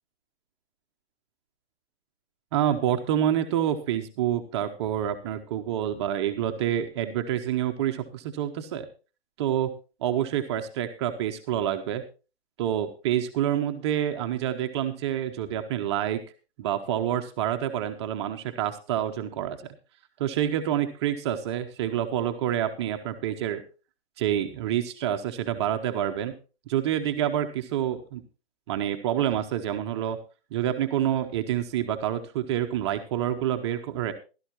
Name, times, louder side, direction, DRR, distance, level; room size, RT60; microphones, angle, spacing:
voice 1, 2.5-8.9 9.4-9.7 10.0-12.0 12.6-16.2 16.6-19.6 20.2-23.6 24.2-26.3 26.7-28.2 28.7-30.2 30.5-34.1, right 10 dB, 25° right, 6 dB, 0.8 m, -27 dB
16.0 x 12.0 x 3.0 m, 0.33 s
figure-of-eight pair, 135°, 32 cm